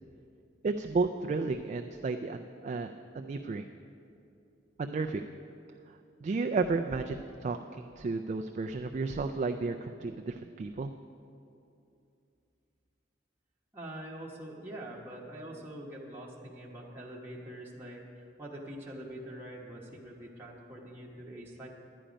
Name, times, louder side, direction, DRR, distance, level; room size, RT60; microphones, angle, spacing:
voice 1, 0.6-3.7 4.8-5.2 6.2-10.9, right 3 dB, 40° right, 6 dB, 0.3 m, -33 dB
voice 2, 13.7-21.7, right 1 dB, 10° right, -4 dB, 1.1 m, -44 dB
10.0 x 10.0 x 5.1 m, 2.6 s
head